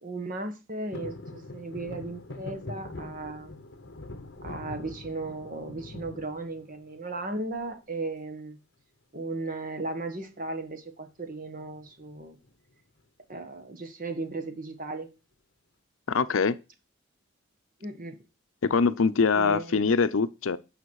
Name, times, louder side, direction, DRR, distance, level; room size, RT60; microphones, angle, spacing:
voice 1, 0.0-3.5 4.4-8.6 9.1-12.4 13.3-15.1 17.8-18.2 19.3-19.8, right 2 dB, 40° right, 1.4 m, -36 dB
sound 1, 0.9-7.1 7.5-8.1 9.4-9.8 10.1-10.2 10.4-10.8 11.6-12.5 13.0-13.1, left 2 dB, 55° left, 1.0 m, -43 dB
voice 2, 16.1-16.6 18.6-20.6, left 5 dB, 80° left, 0.6 m, -23 dB
8.8 x 5.1 x 4.7 m
head